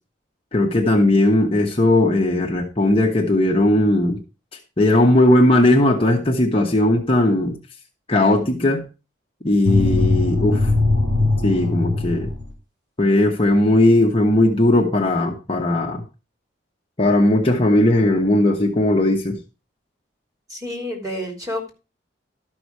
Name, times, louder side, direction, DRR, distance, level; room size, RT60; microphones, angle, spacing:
voice 1, 0.5-4.2 4.8-7.6 8.1-8.8 9.4-10.7 11.4-12.3 13.0-16.0 17.0-19.3, left 1 dB, 30° left, 0 dB, 1.2 m, -17 dB
sound 1, 9.6-12.5, left 2 dB, 75° right, 4.1 m, -20 dB
voice 2, 20.5-21.7, left 1 dB, 20° right, 1 dB, 3.3 m, -29 dB
12.5 x 6.1 x 4.8 m, 0.31 s
head